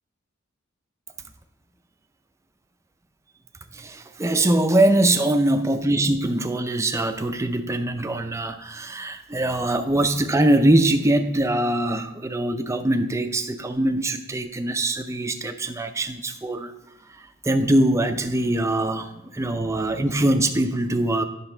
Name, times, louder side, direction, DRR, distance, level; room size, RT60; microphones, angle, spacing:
voice 1, 3.7-16.7 17.2-21.3, right 1 dB, 15° right, 7 dB, 0.5 m, -22 dB
9.7 x 6.0 x 4.4 m, 0.95 s
head